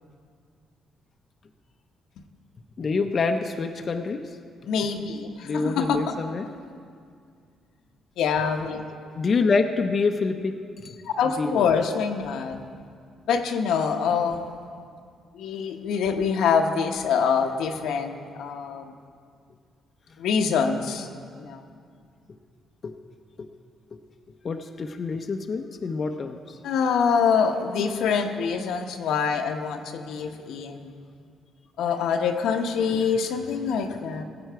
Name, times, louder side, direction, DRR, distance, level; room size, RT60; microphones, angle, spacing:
voice 1, 2.8-4.2 5.4-6.5 9.2-10.6 10.8-10.9 11.4-11.7 22.8-22.9 23.4-23.5 23.9-24.0 24.4-26.4, left 4 dB, 45° left, 5 dB, 0.6 m, -26 dB
voice 2, 4.7-6.2 8.2-8.8 11.2-12.6 13.3-14.4 15.3-18.8 20.2-21.1 21.4-21.6 26.6-30.9 31.8-34.2, left 6 dB, 80° left, 4 dB, 0.9 m, -25 dB
17.0 x 7.9 x 4.6 m, 2.2 s
cardioid pair, 90°, 0 cm